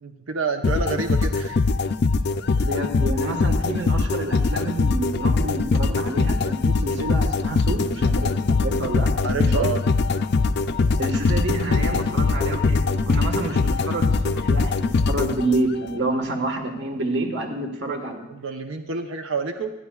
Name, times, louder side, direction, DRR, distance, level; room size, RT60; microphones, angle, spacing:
voice 1, 0.0-1.6 2.6-2.7 9.2-9.8 17.9-18.0 18.3-19.7, right 5 dB, 75° right, 5 dB, 0.8 m, -28 dB
sound 1, 0.6-15.9, left 3 dB, 50° left, 0.4 m, -22 dB
voice 2, 2.6-9.7 11.0-18.3, right 2 dB, 55° right, 4 dB, 1.4 m, -28 dB
25.0 x 9.4 x 2.4 m, 0.98 s
head